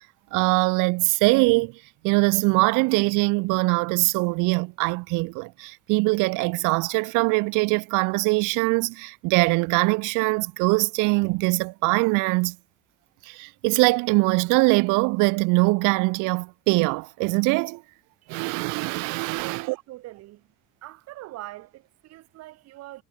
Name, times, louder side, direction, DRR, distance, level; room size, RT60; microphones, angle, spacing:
voice 1, 0.3-1.7 2.0-12.6 13.2-17.8 18.3-19.8, right 27 dB, 75° right, 0.8 m, -22 dB
voice 2, 19.3-20.5 20.8-23.0, right 17 dB, 55° right, 2.8 m, -42 dB
cardioid pair, 180°, 31 cm